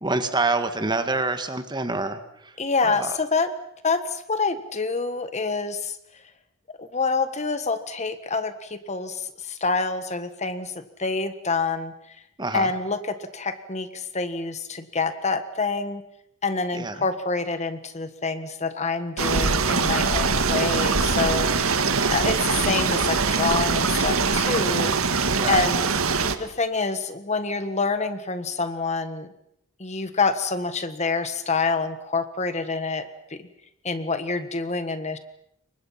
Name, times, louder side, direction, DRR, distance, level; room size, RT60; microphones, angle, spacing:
voice 1, 0.0-2.5 2.8-3.2 12.4-12.7 16.7-16.9 25.4-25.6, right 3 dB, 20° right, 9 dB, 1.7 m, -26 dB
voice 2, 2.6-3.5 3.8-6.0 6.8-10.7 11.0-11.9 12.5-16.0 16.4-25.9 26.4-29.3 29.8-33.5 33.8-35.2, left 4 dB, 30° left, 10 dB, 1.5 m, -27 dB
sound 1, 19.2-26.4, right 4 dB, 75° right, 1.8 m, -22 dB
29.0 x 24.0 x 5.9 m, 0.74 s
head